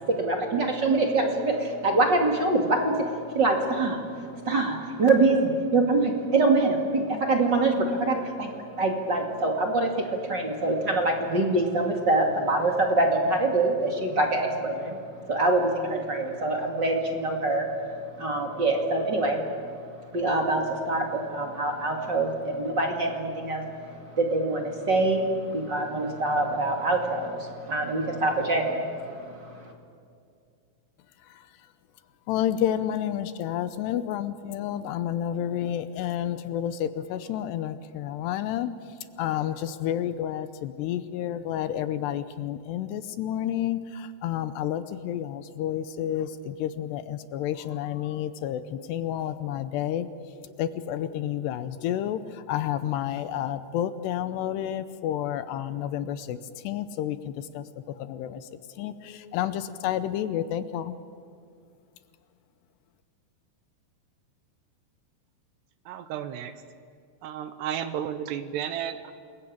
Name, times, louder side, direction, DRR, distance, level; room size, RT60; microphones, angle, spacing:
voice 1, 0.0-4.0 4.4-15.0 15.3-17.7 18.2-19.4 20.1-23.7 24.1-29.1, right 2 dB, 35° right, 2 dB, 2.0 m, -25 dB
voice 2, 32.3-38.7 39.2-50.1 50.6-56.4 56.6-58.4 58.8-60.9, left 11 dB, 75° left, 12 dB, 2.8 m, -30 dB
voice 3, 65.9-66.5 67.2-69.1, right 9 dB, 75° right, 10 dB, 3.0 m, -33 dB
28.5 x 21.5 x 8.7 m, 2.3 s
omnidirectional pair, 5.2 m